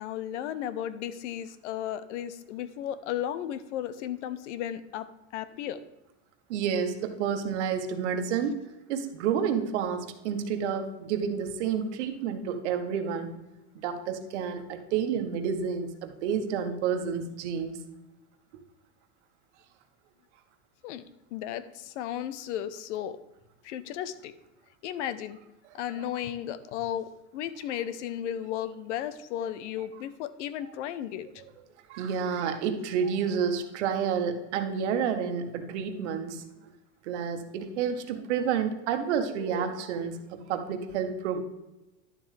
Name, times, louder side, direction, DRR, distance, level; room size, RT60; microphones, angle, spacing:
voice 1, 0.0-5.8 20.8-21.0 21.3-23.2 23.6-24.3 24.8-25.4 25.7-31.3, left 10 dB, 80° left, 14 dB, 0.8 m, -34 dB
voice 2, 6.5-8.6 8.9-13.4 13.7-17.8 31.9-36.4 37.1-41.4, right 7 dB, 75° right, 7 dB, 1.4 m, -30 dB
11.0 x 7.5 x 3.4 m, 1.0 s
supercardioid pair, 175°, 35 cm